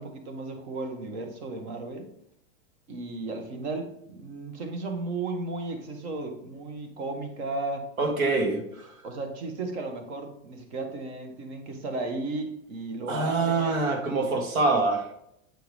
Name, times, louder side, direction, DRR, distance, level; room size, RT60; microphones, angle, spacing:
voice 1, 0.0-2.1 2.9-7.9 9.0-13.8, right 3 dB, 55° right, 5 dB, 1.5 m, -34 dB
voice 2, 8.0-9.0 13.1-15.0, right 3 dB, 90° right, 4 dB, 1.8 m, -25 dB
7.9 x 4.6 x 3.5 m, 0.75 s
supercardioid pair, 165°, 40 cm